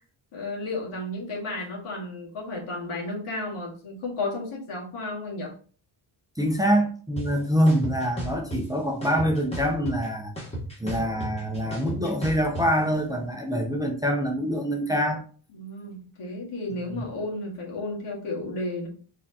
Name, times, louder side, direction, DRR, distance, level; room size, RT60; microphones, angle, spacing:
voice 1, 0.3-5.5 15.5-18.9, left 2 dB, 90° left, -3 dB, 2.0 m, -33 dB
voice 2, 6.4-10.3 10.8-15.2 16.9-17.0, equal, 10° right, 2 dB, 0.5 m, -25 dB
sound 1, 7.2-7.3 7.7-8.6 9.0-10.1 10.4-12.6, right 1 dB, 10° left, 1.2 m, -33 dB
4.4 x 3.6 x 2.8 m, 0.41 s
wide cardioid pair, 165°, 49 cm